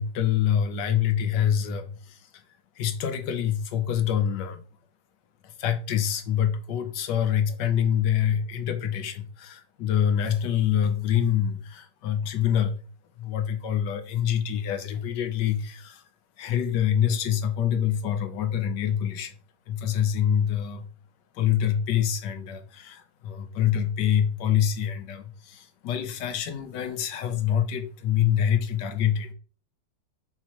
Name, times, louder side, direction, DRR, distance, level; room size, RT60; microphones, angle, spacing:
voice 1, 0.0-2.2 2.8-4.6 5.4-12.8 13.2-16.0 16.4-19.3 19.7-20.8 21.3-29.3, left 9 dB, 75° left, 1.3 m, -26 dB
6.0 x 3.0 x 2.9 m
omnidirectional pair, 2.0 m